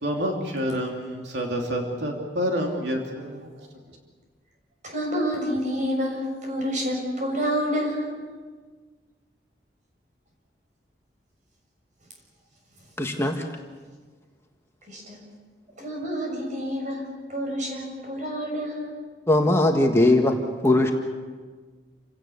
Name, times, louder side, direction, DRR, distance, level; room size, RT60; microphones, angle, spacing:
voice 1, 0.0-3.5, equal, 80° right, 1 dB, 2.9 m, -28 dB
voice 2, 4.8-8.2 14.9-15.2 15.8-18.9, equal, 45° right, 0 dB, 6.8 m, -28 dB
voice 3, 13.0-13.4 19.3-20.3 20.6-20.9, left 2 dB, 15° left, 2 dB, 1.6 m, -19 dB
28.5 x 17.0 x 7.2 m, 1.5 s
head